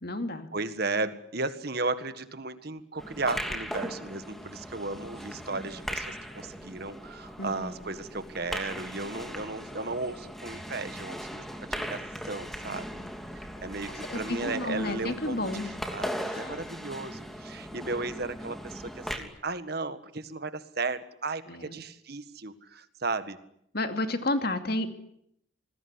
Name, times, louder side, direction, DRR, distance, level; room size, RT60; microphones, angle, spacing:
voice 1, 0.0-0.5 7.4-7.7 12.6-13.1 14.1-15.7 16.3-16.5 21.5-21.8 23.7-24.9, left 1 dB, 50° left, 7 dB, 2.6 m, -32 dB
voice 2, 0.5-11.4 11.7-12.9 13.3-15.6 15.9-23.4, right 3 dB, 50° right, 11 dB, 1.7 m, -35 dB
sound 1, 3.0-19.2, equal, ahead, 2.9 m, -38 dB
27.5 x 20.5 x 9.9 m, 0.73 s
head